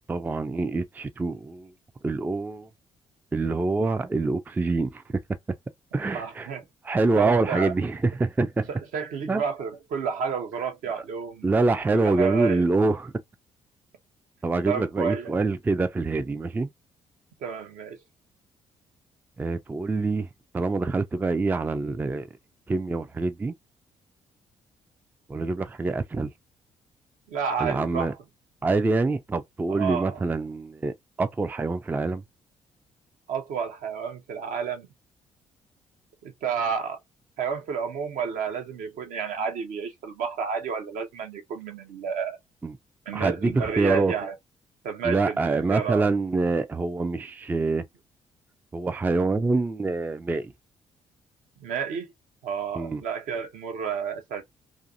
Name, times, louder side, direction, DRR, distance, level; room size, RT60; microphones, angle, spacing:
voice 1, 0.1-1.7 2.0-2.7 3.3-5.0 5.9-6.5 6.8-8.7 9.3-9.4 11.4-13.1 14.4-16.7 19.4-20.3 20.5-22.3 22.7-23.5 25.3-26.3 27.6-28.1 28.6-32.2 42.6-42.8 43.1-44.1 45.0-47.8 48.7-50.5 52.7-53.0, right 3 dB, 10° right, 0.3 m, -25 dB
voice 2, 6.1-6.6 7.1-7.7 8.7-11.5 11.9-12.7 14.7-15.3 17.4-18.0 27.3-28.2 29.7-30.2 33.3-34.9 36.2-37.0 37.4-42.4 43.1-44.4 44.8-46.1 51.6-52.1 52.4-54.4, right 6 dB, 60° right, 0.7 m, -30 dB
2.5 x 2.4 x 2.6 m
figure-of-eight pair, 40°, 16 cm